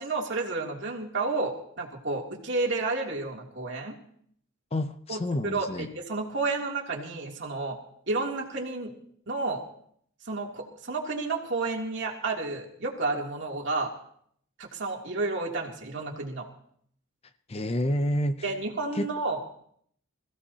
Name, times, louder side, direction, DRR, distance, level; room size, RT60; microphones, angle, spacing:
voice 1, 0.0-4.0 5.1-7.8 8.1-8.9 9.3-9.6 10.2-13.9 14.6-16.5 18.4-19.6, right 3 dB, 55° right, -1 dB, 2.9 m, -31 dB
voice 2, 4.7-5.9 17.5-18.5 18.9-19.1, left 1 dB, 25° left, 10 dB, 0.6 m, -29 dB
26.5 x 16.0 x 2.9 m, 0.65 s
head